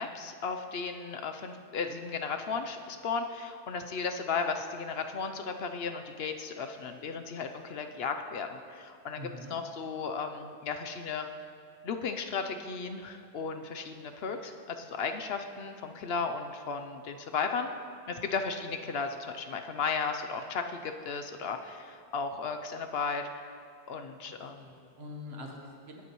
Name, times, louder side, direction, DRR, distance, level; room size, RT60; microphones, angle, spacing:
voice 1, 0.0-11.3 11.8-17.7 18.1-23.5 23.9-24.7, left 5 dB, 65° left, 6 dB, 0.9 m, -35 dB
voice 2, 9.2-9.5 24.5-26.0, left 1 dB, 65° right, 1 dB, 1.5 m, -44 dB
18.5 x 8.4 x 3.0 m, 2.4 s
omnidirectional pair, 1.1 m